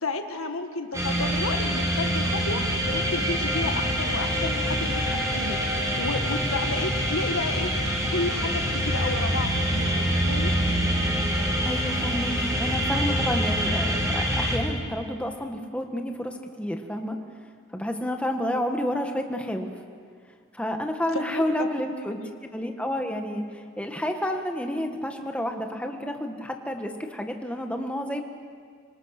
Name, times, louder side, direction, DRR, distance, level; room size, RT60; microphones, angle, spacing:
voice 1, 0.0-10.5 21.1-21.4 22.1-22.3, left 3 dB, 85° left, 6 dB, 1.8 m, -32 dB
sound 1, 0.9-14.6, equal, 15° right, 4.2 m, -25 dB
voice 2, 11.6-17.2 17.7-19.7 20.5-28.2, equal, 5° left, 4 dB, 1.5 m, -30 dB
26.0 x 25.5 x 6.6 m, 2.1 s
head